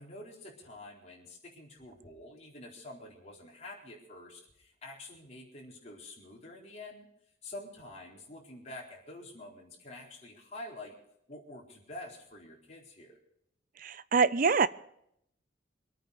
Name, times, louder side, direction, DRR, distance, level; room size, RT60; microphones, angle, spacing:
voice 1, 0.0-7.1 7.4-11.0 11.3-13.2, left 1 dB, 35° left, -3 dB, 4.2 m, -47 dB
voice 2, 13.8-14.7, right 5 dB, 45° right, 16 dB, 0.6 m, -25 dB
24.5 x 9.1 x 4.9 m, 0.73 s
head